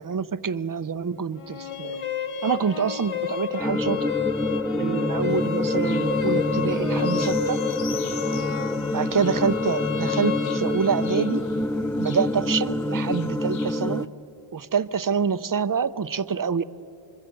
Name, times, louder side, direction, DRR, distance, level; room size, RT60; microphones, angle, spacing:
voice 1, 0.0-2.0 2.4-4.1 4.7-7.6 8.9-11.4 12.0-14.1 14.5-16.6, right 6 dB, 40° right, 15 dB, 0.7 m, -26 dB
sound 1, 1.4-11.4, left 9 dB, 85° left, 1.2 m, -31 dB
sound 2, 3.6-14.0, left 1 dB, 5° left, 0.5 m, -26 dB
sound 3, 5.3-14.1, left 7 dB, 65° left, 0.7 m, -43 dB
25.5 x 22.5 x 7.8 m, 3.0 s
wide cardioid pair, 70°, 49 cm